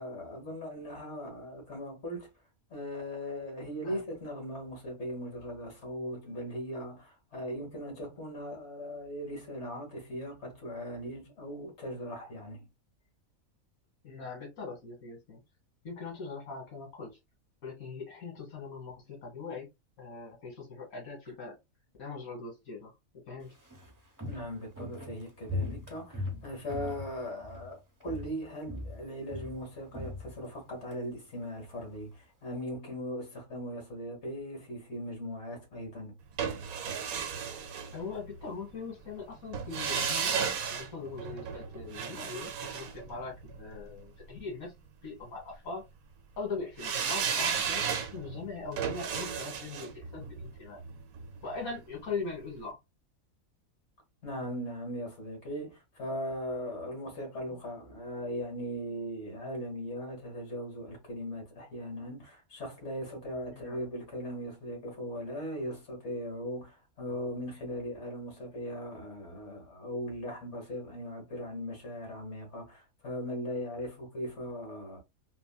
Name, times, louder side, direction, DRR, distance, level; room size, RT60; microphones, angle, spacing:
voice 1, 0.0-2.3 2.7-12.7 24.3-36.2 54.2-75.0, equal, 50° left, 1.7 m, -39 dB
voice 2, 14.0-15.4 15.8-17.2 17.6-19.7 20.0-21.6 22.0-22.9 23.2-23.5 37.9-44.7 45.0-45.8 46.4-47.8 48.1-50.8 51.4-52.8 63.5-63.9, left 4 dB, 75° left, 1.5 m, -41 dB
Walk footsteps, 23.4-27.7 28.0-28.4 28.7-31.0 31.3-31.4, left 2 dB, 20° right, 0.7 m, -39 dB
sound 1, 36.4-38.5 39.5-43.8 46.8-51.8 52.1-52.2, right 7 dB, 80° right, 1.1 m, -34 dB
3.5 x 2.1 x 2.3 m
omnidirectional pair, 1.5 m